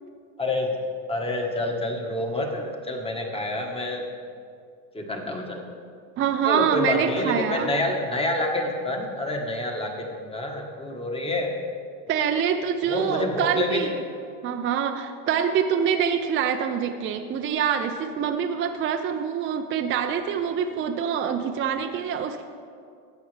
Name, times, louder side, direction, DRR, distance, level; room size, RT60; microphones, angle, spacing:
voice 1, 0.4-0.7 1.1-4.0 4.9-5.6 6.4-11.5 12.8-13.9, left 1 dB, 15° left, 1 dB, 1.4 m, -28 dB
voice 2, 6.2-7.7 12.1-13.9 14.4-22.4, right 7 dB, 30° right, 5 dB, 0.5 m, -25 dB
13.5 x 8.6 x 3.4 m, 2.3 s
supercardioid pair, 110°, 40 cm